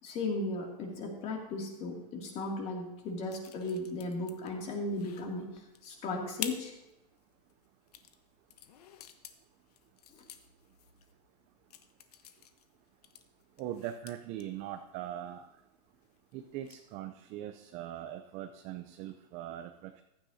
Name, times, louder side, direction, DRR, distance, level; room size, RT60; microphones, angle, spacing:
voice 1, 0.0-5.5 5.8-6.7, left 2 dB, 30° left, 0 dB, 2.5 m, -36 dB
sound 1, 3.0-17.0, left 10 dB, 70° left, 1.0 m, -50 dB
voice 2, 13.6-15.5 16.3-20.0, right 11 dB, 35° right, 8 dB, 0.6 m, -41 dB
15.0 x 11.5 x 2.8 m, 0.93 s
hypercardioid pair, 135°, 21 cm